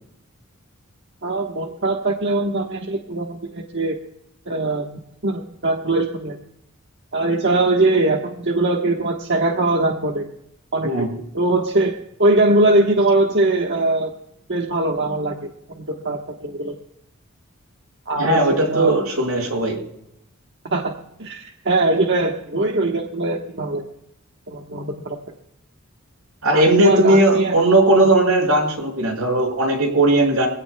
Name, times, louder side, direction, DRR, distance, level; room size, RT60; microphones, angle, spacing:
voice 1, 1.2-4.0 4.5-4.9 5.2-6.4 7.1-10.3 10.7-11.0 11.3-11.9 12.2-14.1 14.5-16.7 18.1-18.4 18.7-18.9 20.6-20.9 21.2-23.9 24.5-25.2 26.5-27.5, right 2 dB, 55° right, 1 dB, 1.3 m, -21 dB
voice 2, 18.2-19.8 26.4-30.5, right 1 dB, 90° right, 2 dB, 6.3 m, -17 dB
24.0 x 17.0 x 2.3 m, 0.79 s
head